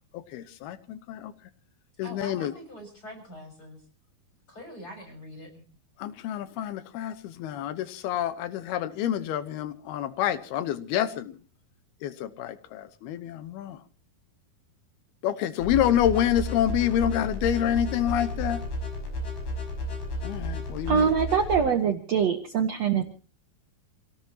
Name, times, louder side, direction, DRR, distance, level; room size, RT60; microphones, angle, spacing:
voice 1, 0.3-1.3 2.0-2.5 6.0-11.3 12.0-13.8 15.2-18.6 20.2-21.1, left 11 dB, 90° left, 13 dB, 3.0 m, -28 dB
voice 2, 2.0-3.8 4.5-5.6, equal, 25° left, 4 dB, 7.0 m, -44 dB
sound 1, 15.6-21.6, left 1 dB, 65° left, 7.3 m, -32 dB
voice 3, 20.9-23.0, right 7 dB, 55° right, 5 dB, 2.1 m, -23 dB
28.0 x 18.0 x 2.9 m, 0.37 s
omnidirectional pair, 4.4 m